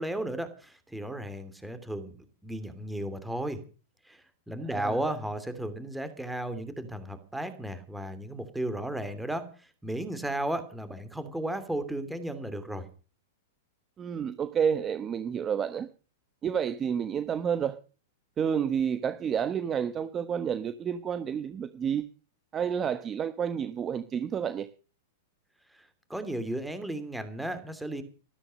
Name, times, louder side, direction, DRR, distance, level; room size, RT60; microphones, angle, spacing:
voice 1, 0.0-3.6 4.1-12.9 25.7-28.0, right 1 dB, 5° right, 2.8 m, -34 dB
voice 2, 14.0-15.9 16.4-17.8 18.4-22.1 22.5-24.7, right 7 dB, 20° right, 1.1 m, -30 dB
14.0 x 13.0 x 6.4 m
hypercardioid pair, 145°, 0 cm